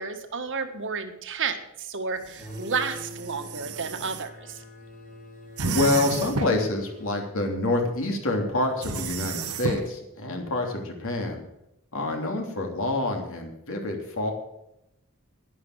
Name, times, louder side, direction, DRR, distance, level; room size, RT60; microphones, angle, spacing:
voice 1, 0.0-4.6, right 5 dB, 60° right, 6 dB, 1.7 m, -31 dB
sound 1, 2.2-4.2 5.6-6.7 8.8-9.9, right 3 dB, 80° right, 1.3 m, -32 dB
sound 2, 2.4-7.3, left 1 dB, 35° left, 3.1 m, -44 dB
voice 2, 5.6-11.4 11.9-14.3, left 2 dB, 65° left, 3 dB, 3.1 m, -27 dB
11.5 x 10.5 x 7.9 m, 0.85 s
head